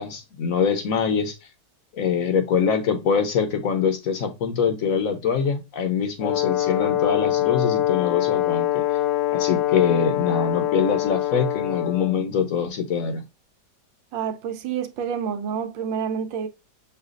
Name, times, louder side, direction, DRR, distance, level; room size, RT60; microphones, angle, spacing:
voice 1, 0.0-1.3 1.9-8.8 9.3-13.2, left 6 dB, 55° left, 1.1 m, -24 dB
Brass instrument, 6.2-12.2, left 13 dB, 85° left, 1.3 m, -24 dB
voice 2, 14.1-16.5, right 7 dB, 85° right, 1.4 m, -28 dB
6.6 x 2.5 x 2.4 m
omnidirectional pair, 2.0 m